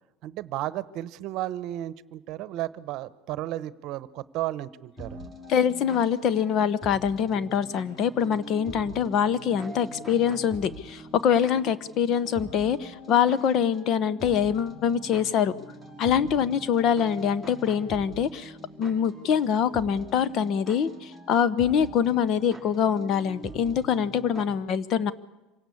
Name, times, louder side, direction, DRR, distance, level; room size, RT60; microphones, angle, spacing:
voice 1, 0.2-5.2, right 14 dB, 55° right, 17 dB, 0.9 m, -33 dB
sound 1, 5.0-24.4, equal, 15° left, 5.6 m, -43 dB
voice 2, 5.5-15.5 16.0-18.5 18.8-25.1, left 8 dB, 45° left, 16 dB, 1.0 m, -24 dB
26.0 x 17.5 x 8.5 m, 1.1 s
supercardioid pair, 120°, 0 cm